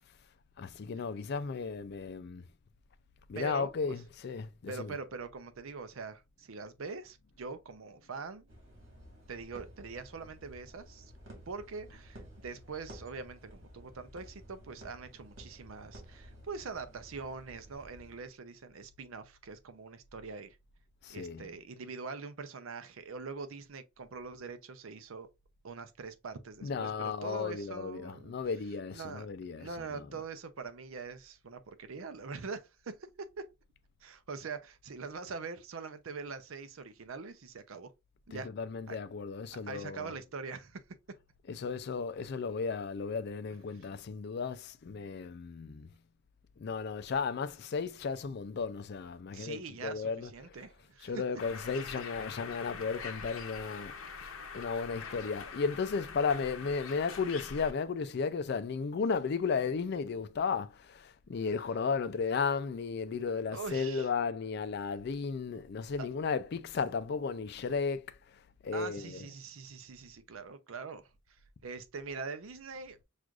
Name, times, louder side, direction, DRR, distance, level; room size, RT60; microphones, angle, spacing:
voice 1, 0.6-2.4 3.3-5.0 21.0-21.5 26.6-30.2 38.3-40.1 41.5-46.0 46.6-50.7 51.0-53.9 54.5-69.3, left 5 dB, 50° left, 0.4 m, -35 dB
voice 2, 3.3-3.7 4.7-8.5 9.3-11.1 11.5-20.6 21.1-25.3 25.6-28.3 28.9-29.3 29.6-33.5 34.0-37.9 38.3-38.5 38.9-39.0 39.7-40.8 49.3-51.2 63.5-64.1 66.0-66.1 68.7-73.0, right 4 dB, 80° right, 0.6 m, -43 dB
sound 1, 8.5-18.3, equal, 65° right, 1.9 m, -53 dB
Bird, 51.4-57.7, left 5 dB, 85° left, 0.8 m, -44 dB
6.1 x 2.5 x 2.4 m
head